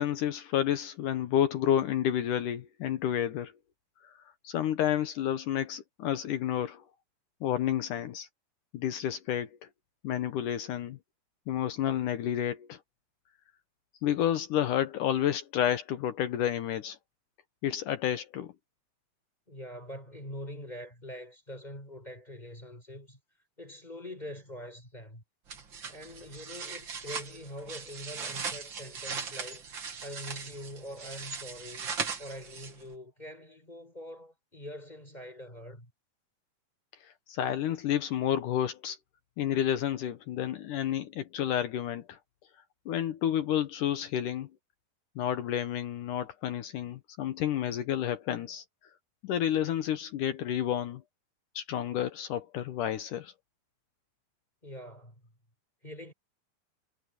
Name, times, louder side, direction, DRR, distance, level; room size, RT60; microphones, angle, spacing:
voice 1, 0.0-3.5 4.4-6.8 7.4-8.3 8.7-9.5 10.0-11.0 11.5-12.8 14.0-17.0 17.6-18.5 37.3-39.0 39.4-42.2 42.9-44.5 45.2-48.6 49.2-51.0 51.6-53.3, left 10 dB, 70° left, 2.1 m, -30 dB
voice 2, 19.5-23.2 23.6-25.2 25.9-29.6 30.0-31.9 32.2-35.9 54.6-55.1 55.8-56.1, left 1 dB, 10° left, 4.3 m, -44 dB
sound 1, 25.5-32.9, right 5 dB, 40° right, 2.0 m, -39 dB
omnidirectional pair, 4.6 m